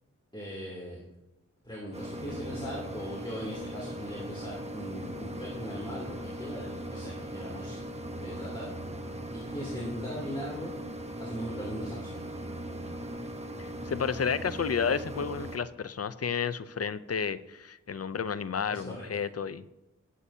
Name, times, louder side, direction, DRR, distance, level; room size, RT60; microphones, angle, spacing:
voice 1, 0.3-1.0 1.6-7.8 8.2-8.7 9.3-10.7 11.2-12.1 18.7-19.0, equal, 15° left, -6 dB, 3.0 m, -39 dB
sound 1, 1.9-15.6, right 1 dB, 20° right, 1.1 m, -39 dB
voice 2, 13.6-19.6, left 6 dB, 50° left, 14 dB, 0.5 m, -31 dB
18.0 x 8.3 x 2.8 m, 0.95 s
wide cardioid pair, 90°, 32 cm